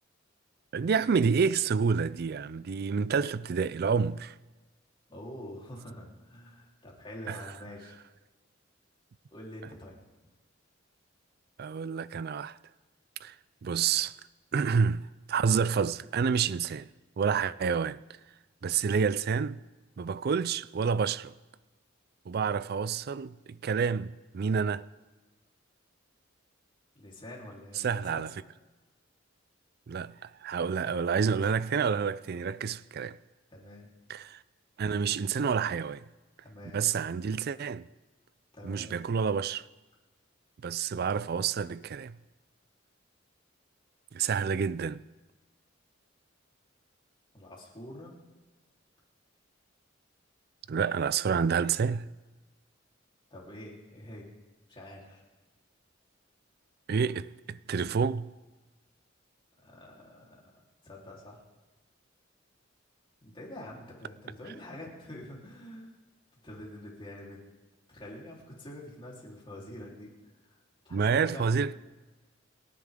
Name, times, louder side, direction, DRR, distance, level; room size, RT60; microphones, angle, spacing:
voice 1, 0.7-4.3 7.3-7.4 11.6-12.6 13.2-13.3 13.6-14.1 14.5-15.0 15.3-16.9 17.2-18.0 18.6-19.6 20.0-21.3 22.3-24.8 27.8-28.3 29.9-33.2 34.1-34.4 34.8-36.0 36.7-37.9 38.6-39.7 40.6-42.2 44.1-45.0 50.7-52.1 56.9-58.3 70.9-71.7, right 6 dB, 50° right, 0.4 m, -28 dB
voice 2, 5.1-8.0 9.3-10.0 26.9-28.3 33.5-33.9 36.4-36.8 38.5-39.1 47.3-48.1 53.3-54.3 54.7-55.2 59.6-60.5 60.8-61.4 63.2-65.9 66.4-67.4 67.9-70.1 70.5-70.6 70.8-71.6, left 1 dB, 25° left, 3.9 m, -46 dB
29.5 x 10.5 x 3.8 m
head